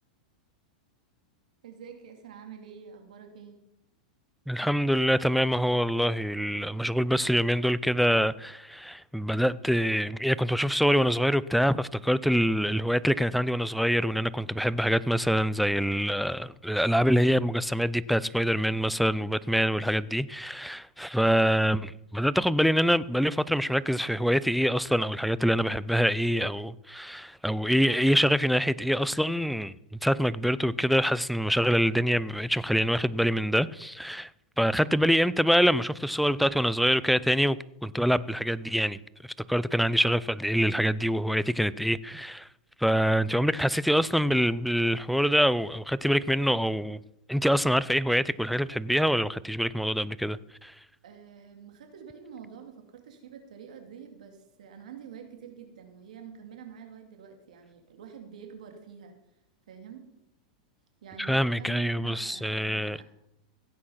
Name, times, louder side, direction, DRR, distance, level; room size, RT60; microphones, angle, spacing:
voice 1, 1.6-3.6 51.0-59.1 59.7-60.1 61.0-63.0, right 7 dB, 80° right, 2.7 m, -47 dB
voice 2, 4.5-29.7 30.0-34.3 34.6-42.5 42.8-47.0 47.3-50.7 61.2-63.0, equal, ahead, 0.4 m, -25 dB
16.0 x 8.8 x 5.7 m
supercardioid pair, 135°, 4 cm